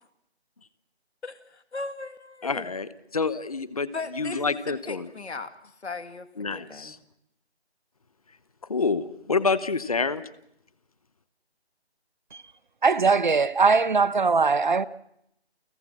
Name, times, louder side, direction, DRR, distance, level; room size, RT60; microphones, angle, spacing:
voice 1, 1.2-2.7 3.9-5.5 5.8-6.9, left 3 dB, 90° left, 2.3 m, -37 dB
voice 2, 2.4-5.1 6.4-7.0 8.7-10.2, left 4 dB, 35° left, 1.0 m, -28 dB
voice 3, 12.8-14.8, right 4 dB, 45° right, 0.8 m, -21 dB
29.5 x 15.0 x 7.3 m
hypercardioid pair, 175°, 33 cm